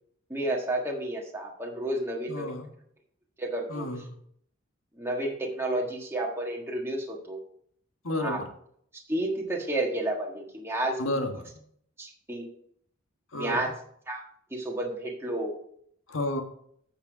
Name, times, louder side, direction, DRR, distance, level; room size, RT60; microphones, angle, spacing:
voice 1, 0.3-2.5 3.4-3.9 5.0-7.4 8.2-8.4 9.1-11.0 12.0-12.5 13.3-13.7 14.1-14.2 14.5-15.5, right 1 dB, 10° right, -1 dB, 1.5 m, -31 dB
voice 2, 2.3-2.7 3.7-4.1 8.0-8.4 11.0-11.5 13.3-13.7 16.1-16.4, left 1 dB, 75° left, 5 dB, 1.5 m, -31 dB
8.5 x 6.7 x 5.1 m, 0.66 s
head